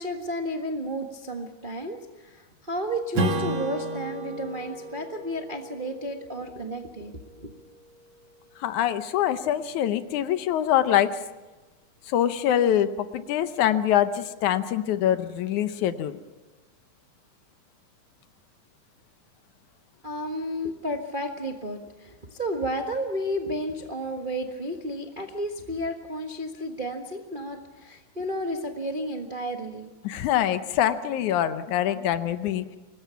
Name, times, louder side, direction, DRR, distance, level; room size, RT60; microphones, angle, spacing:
voice 1, 0.0-7.5 20.0-29.9, equal, 35° right, 3 dB, 0.8 m, -32 dB
Strum, 3.1-8.1, right 2 dB, 55° right, 2.9 m, -33 dB
voice 2, 8.6-11.2 12.1-16.2 30.0-32.7, left 11 dB, 75° left, 11 dB, 2.3 m, -24 dB
25.5 x 20.0 x 5.8 m, 1.2 s
omnidirectional pair, 3.6 m